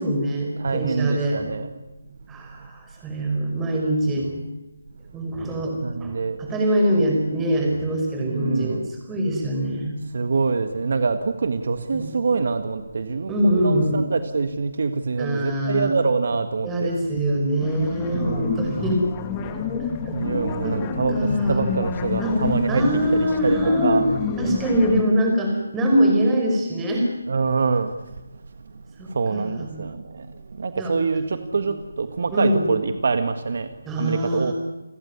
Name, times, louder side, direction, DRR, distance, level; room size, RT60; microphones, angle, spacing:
voice 1, 0.0-1.4 2.3-4.3 5.1-8.8 9.1-10.0 11.9-12.1 13.3-14.0 15.2-16.0 16.6-19.0 20.1-20.2 20.6-20.8 21.1-21.6 22.2-22.4 22.7-24.0 24.4-27.1 29.0-29.8 30.8-30.9 31.5-31.6 32.3-32.7 33.8-34.5, equal, 10° right, 1 dB, 5.4 m, -23 dB
voice 2, 0.6-1.7 2.6-2.7 5.8-6.5 8.3-8.9 10.1-16.9 18.1-18.8 20.1-22.8 23.1-24.1 27.3-28.2 28.7-34.5, right 4 dB, 55° right, 9 dB, 1.6 m, -25 dB
sound 1, 17.6-25.0, left 6 dB, 20° left, 2.0 m, -28 dB
29.5 x 15.0 x 9.7 m, 1.1 s
figure-of-eight pair, 160°, 0 cm